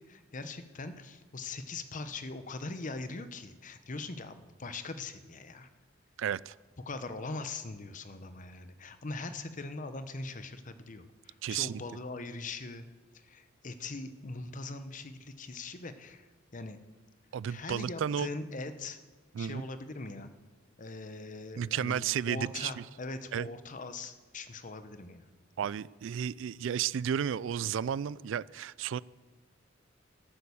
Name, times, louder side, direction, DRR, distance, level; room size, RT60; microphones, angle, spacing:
voice 1, 0.0-5.7 6.9-12.9 13.1-16.8 17.5-19.0 19.4-20.3 20.8-25.3, left 3 dB, 40° left, 10 dB, 0.9 m, -41 dB
voice 2, 6.2-6.5 11.4-11.8 17.3-18.3 19.3-19.7 21.6-22.7 23.3-23.5 25.6-29.0, right 8 dB, 70° right, 21 dB, 0.3 m, -32 dB
12.5 x 9.2 x 7.0 m, 1.3 s
head